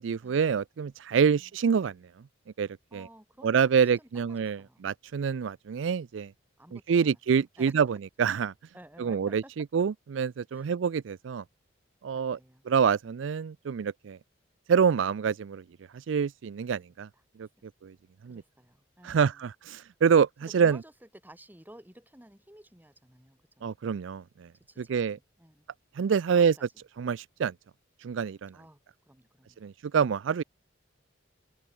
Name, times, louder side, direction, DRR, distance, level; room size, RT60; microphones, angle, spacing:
voice 1, 0.0-2.0 2.6-3.1 3.4-6.3 6.9-8.5 9.0-11.4 12.0-12.4 12.7-14.2 14.7-15.6 15.9-17.1 17.4-17.5 17.8-17.9 18.2-18.4 19.0-20.3 20.5-20.8 23.6-24.5 24.8-25.2 26.0-26.6 27.0-27.5 28.0-28.5 29.6-30.4, right 6 dB, 80° right, 0.4 m, -26 dB
voice 2, 1.1-1.5 2.9-3.6 4.0-4.8 6.6-7.7 8.7-9.5 10.5-10.7 12.1-12.6 17.1-17.5 18.3-19.5 20.4-23.7 24.7-25.7 26.3-26.6 28.5-28.8 29.1-29.7, right 1 dB, 10° right, 4.3 m, -54 dB
head